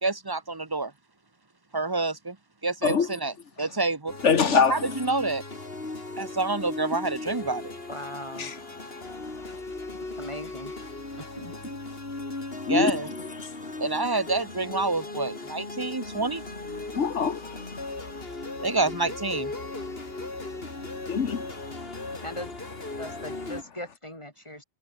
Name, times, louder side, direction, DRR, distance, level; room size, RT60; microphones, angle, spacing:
voice 1, 0.0-0.9 1.7-2.4 2.6-4.1 4.5-5.4 6.2-7.7 12.7-13.1 13.8-16.4 18.6-19.5, right 3 dB, 20° right, 1.4 m, -28 dB
sound 1, 4.1-23.6, left 2 dB, 55° left, 3.5 m, -37 dB
voice 2, 4.2-4.8 8.4-8.5 12.7-12.9 16.9-17.6 21.1-21.4, left 6 dB, 80° left, 1.8 m, -23 dB
voice 3, 7.9-8.5 10.2-10.7 11.2-11.5 22.2-22.5 23.0-24.6, left 1 dB, 25° left, 5.3 m, -39 dB
omnidirectional pair, 1.2 m